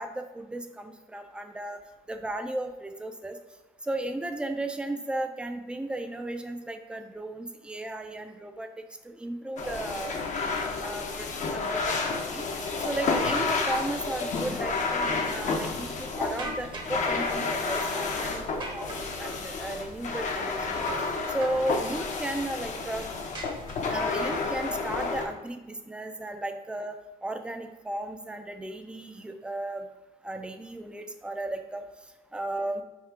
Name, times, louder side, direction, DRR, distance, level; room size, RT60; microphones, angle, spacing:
voice 1, 0.0-1.8 2.1-3.4 3.8-8.7 9.0-10.2 10.8-12.4 12.8-18.4 18.7-20.8 21.3-23.1 23.9-29.9 30.2-31.8 32.3-32.8, right 1 dB, 5° right, 6 dB, 0.3 m, -35 dB
sound 1, 9.6-25.3, left 4 dB, 45° left, 0.6 m, -30 dB
sound 2, 16.4-17.0 18.6-19.5 20.9-21.2 21.4-22.1 23.3-24.1, right 2 dB, 30° right, 0.7 m, -39 dB
3.6 x 2.4 x 4.4 m, 1.1 s
cardioid pair, 110°, 17 cm